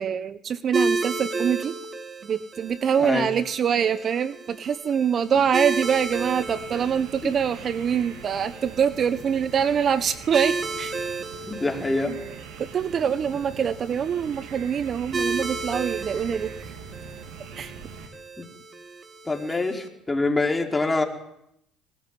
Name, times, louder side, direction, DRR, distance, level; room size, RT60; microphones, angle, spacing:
voice 1, 0.0-1.8 2.2-10.9 12.6-16.5 17.6-17.7, right 7 dB, 45° right, 14 dB, 1.1 m, -24 dB
sound 1, 0.7-19.9, right 3 dB, 30° right, 3.3 m, -33 dB
voice 2, 3.0-3.3 7.2-7.3 11.5-12.2 18.4-18.5 19.3-21.0, left 2 dB, 15° left, 3 dB, 5.0 m, -25 dB
sound 2, 5.4-18.1, right 6 dB, 80° right, 3.1 m, -43 dB
24.5 x 19.5 x 9.5 m, 0.78 s
supercardioid pair, 80°, 0 cm